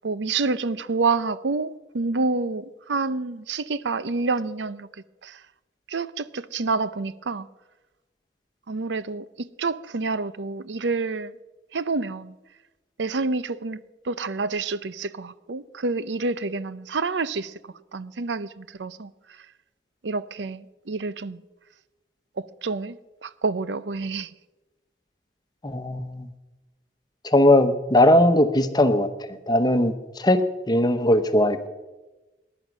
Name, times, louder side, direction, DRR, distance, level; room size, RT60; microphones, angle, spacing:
voice 1, 0.0-4.9 5.2-5.4 5.9-7.5 8.7-11.3 11.7-12.3 13.0-13.8 14.0-17.6 17.9-19.1 20.0-21.4 22.4-23.0 23.2-24.3, right 3 dB, 90° right, 0.7 m, -28 dB
voice 2, 25.6-26.3 27.2-30.4 30.7-31.7, left 1 dB, 25° left, 1.0 m, -19 dB
20.0 x 11.0 x 6.1 m
head